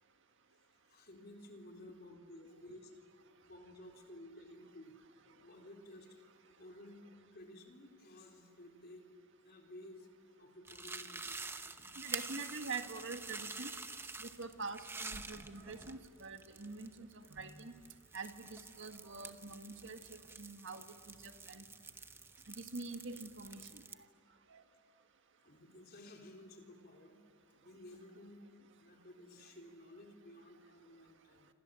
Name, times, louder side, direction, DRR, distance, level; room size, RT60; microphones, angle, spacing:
voice 1, 0.7-2.9 3.5-5.0 5.4-6.3 6.6-7.0 7.3-9.1 9.4-10.1 10.4-11.5 11.8-12.0 25.4-27.2 27.6-28.4 28.8-31.5, left 1 dB, 45° left, 2 dB, 4.0 m, -55 dB
sound 1, 10.7-23.9, right 3 dB, 10° right, 0.9 m, -48 dB
voice 2, 12.0-13.7 14.2-17.7 18.1-21.6 22.6-23.8 24.5-24.6, right 4 dB, 55° right, 7 dB, 1.8 m, -45 dB
28.5 x 26.5 x 7.7 m, 2.5 s
head